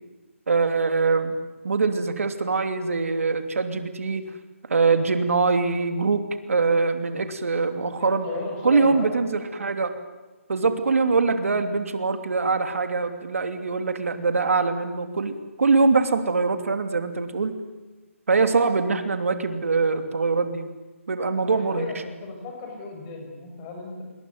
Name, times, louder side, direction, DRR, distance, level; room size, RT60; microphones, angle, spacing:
voice 1, 0.5-1.3 1.6-4.2 4.7-6.2 6.5-8.3 8.6-9.9 10.5-15.3 15.6-17.5 18.3-20.6 21.1-21.8, right 4 dB, 70° right, 8 dB, 3.0 m, -23 dB
voice 2, 7.1-7.6 8.0-9.2 21.4-24.0, left 3 dB, 20° left, 2 dB, 6.5 m, -36 dB
29.5 x 20.5 x 9.6 m, 1.2 s
hypercardioid pair, 165°, 8 cm